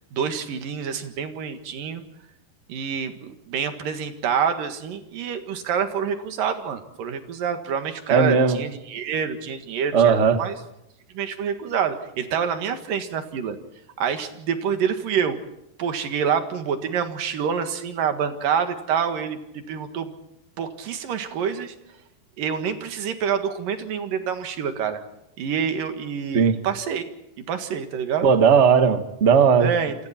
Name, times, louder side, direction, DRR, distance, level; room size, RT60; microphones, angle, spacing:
voice 1, 0.1-2.0 2.7-10.6 11.1-13.6 14.0-15.4 15.8-20.1 20.6-21.7 22.4-25.0 25.4-27.0 27.5-28.3 29.6-29.9, right 7 dB, 75° right, 8 dB, 3.4 m, -27 dB
voice 2, 8.1-8.6 9.9-10.4 26.3-26.6 28.2-29.7, right 6 dB, 45° right, 8 dB, 0.8 m, -17 dB
28.5 x 26.5 x 4.4 m, 0.85 s
omnidirectional pair, 4.0 m